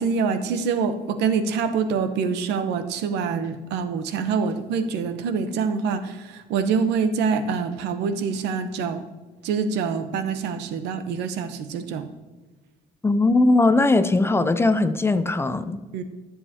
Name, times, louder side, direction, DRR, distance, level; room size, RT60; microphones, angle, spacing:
voice 1, 0.0-9.0 9.4-12.1 15.9-16.0, right 5 dB, 85° right, 0.8 m, -25 dB
voice 2, 13.0-15.8, left 2 dB, 15° left, 0.5 m, -19 dB
13.5 x 7.4 x 2.8 m
cardioid pair, 110°, 17 cm